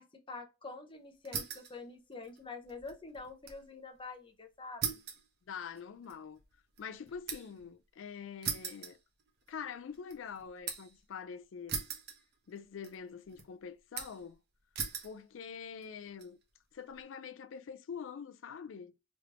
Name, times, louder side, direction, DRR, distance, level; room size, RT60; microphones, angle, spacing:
voice 1, 0.0-5.0, left 3 dB, 25° left, 0.8 m, -47 dB
sound 1, 1.2-1.8 2.1-3.6 4.0-4.1 4.8-7.6 8.4-9.6 9.9-11.0 11.7-12.6 12.8-13.4 14.0-14.3 14.7-15.2 15.8-16.3, right 7 dB, 55° right, 0.9 m, -40 dB
voice 2, 5.5-6.4 6.8-9.0 9.5-11.8 12.5-14.4 15.0-16.4 16.7-18.9, left 6 dB, 80° left, 0.4 m, -45 dB
3.3 x 3.0 x 2.5 m
head